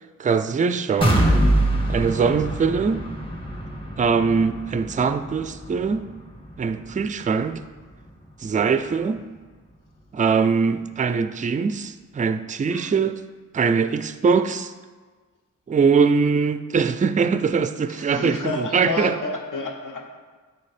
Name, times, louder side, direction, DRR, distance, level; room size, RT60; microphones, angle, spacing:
voice 1, 0.2-1.3 1.9-3.0 4.0-6.1 6.6-7.6 8.4-9.2 10.1-13.2 13.5-14.7 15.7-19.2, right 5 dB, 25° right, 11 dB, 0.3 m, -22 dB
sound 1, 1.0-8.8 9.2-9.3 9.7-9.8, right 1 dB, 15° left, 1.7 m, -25 dB
voice 2, 12.7-13.0 17.9-20.2, left 3 dB, 65° left, 3 dB, 0.9 m, -30 dB
6.5 x 4.1 x 4.9 m, 1.4 s
cardioid pair, 55°, 34 cm